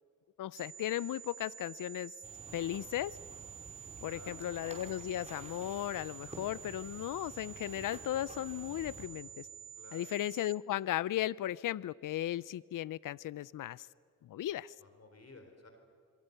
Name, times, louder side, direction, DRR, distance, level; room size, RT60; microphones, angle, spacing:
voice 1, 0.4-2.1 2.5-3.2 4.0-9.5 9.9-13.9 14.3-14.7, left 13 dB, 70° left, 22 dB, 0.5 m, -36 dB
sound 1, 0.6-10.6, right 9 dB, 50° right, 1.5 m, -50 dB
sound 2, 2.2-9.1, right 2 dB, 20° right, 4.9 m, -51 dB
voice 2, 4.0-4.4 9.7-10.0 14.8-15.7, left 3 dB, 50° left, 5 dB, 4.2 m, -55 dB
27.0 x 23.0 x 6.8 m, 2.4 s
cardioid pair, 55°, 32 cm